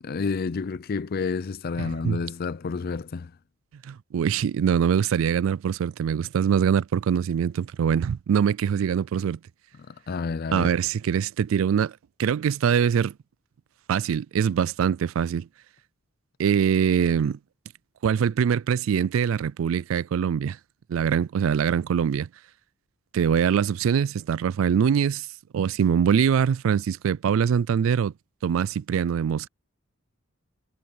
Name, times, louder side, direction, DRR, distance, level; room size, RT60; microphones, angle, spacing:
voice 1, 0.0-3.3 9.8-10.7, left 4 dB, 50° left, 0.4 m, -30 dB
voice 2, 1.8-2.2 3.8-9.4 10.5-11.9 12.2-13.1 13.9-15.5 16.4-17.4 18.0-20.6 20.9-22.3 23.1-25.3 25.5-28.1 28.4-29.5, right 7 dB, 80° right, 0.3 m, -23 dB
head